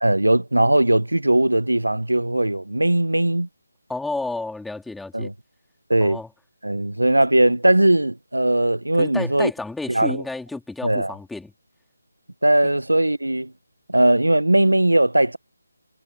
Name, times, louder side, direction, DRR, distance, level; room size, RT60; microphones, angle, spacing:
voice 1, 0.0-3.5 5.1-5.3 5.9-6.2 6.6-9.5 9.9-10.2 10.8-11.1 12.4-13.5 13.9-15.4, right 1 dB, 85° right, 1.3 m, -19 dB
voice 2, 3.9-5.3 6.0-6.3 9.0-11.5 12.6-12.7, left 3 dB, ahead, 4.1 m, -31 dB
figure-of-eight pair, 155°, 0 cm